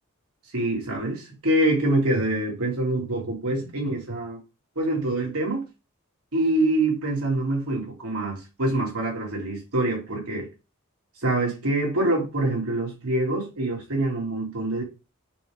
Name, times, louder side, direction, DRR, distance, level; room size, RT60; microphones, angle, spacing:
voice 1, 0.5-4.4 4.8-5.6 6.3-10.5 11.2-14.8, right 1 dB, 85° right, 2.6 m, -25 dB
5.8 x 3.6 x 5.0 m
head